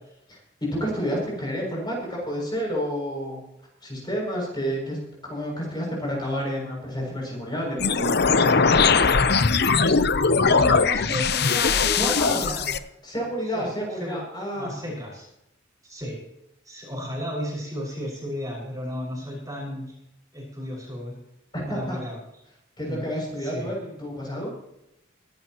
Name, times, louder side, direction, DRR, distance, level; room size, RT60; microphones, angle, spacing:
voice 1, 0.3-3.4 3.8-5.0 5.2-9.1 12.0-12.5 13.0-14.7 21.5-22.0 22.8-24.5, equal, 20° left, -2 dB, 7.2 m, -30 dB
sound 1, 7.8-12.8, left 5 dB, 55° left, 0.8 m, -20 dB
voice 2, 10.4-12.7 13.4-14.2 14.5-15.3 15.8-16.2 16.6-19.9 20.3-21.2 21.7-22.2 22.9-23.1 23.4-23.7, equal, 20° right, -3 dB, 6.1 m, -33 dB
25.0 x 12.0 x 3.1 m, 0.83 s
head